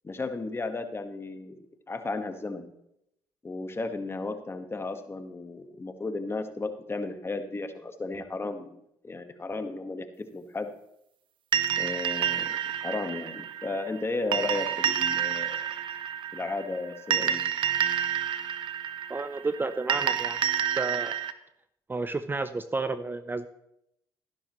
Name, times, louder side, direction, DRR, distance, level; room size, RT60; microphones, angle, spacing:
voice 1, 0.0-2.7 3.4-10.7 11.8-15.6 16.3-17.4, left 3 dB, 25° left, 7 dB, 1.5 m, -34 dB
sound 1, 11.5-21.3, right 9 dB, 55° right, 0.8 m, -29 dB
voice 2, 19.1-20.5 20.7-21.2 21.9-23.5, right 3 dB, 20° right, 11 dB, 0.7 m, -31 dB
13.5 x 11.5 x 3.1 m, 0.79 s
supercardioid pair, 70°, 10 cm